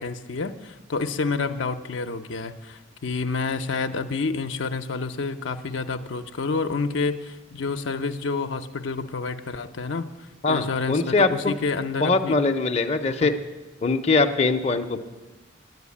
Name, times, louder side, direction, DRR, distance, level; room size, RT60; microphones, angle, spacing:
voice 1, 0.0-10.1 10.5-12.3 13.2-13.3, left 4 dB, 70° left, 7 dB, 0.6 m, -29 dB
voice 2, 10.4-11.5 12.0-13.3 13.8-15.0, left 3 dB, 35° left, 4 dB, 0.6 m, -22 dB
10.5 x 9.4 x 8.4 m, 1.2 s
head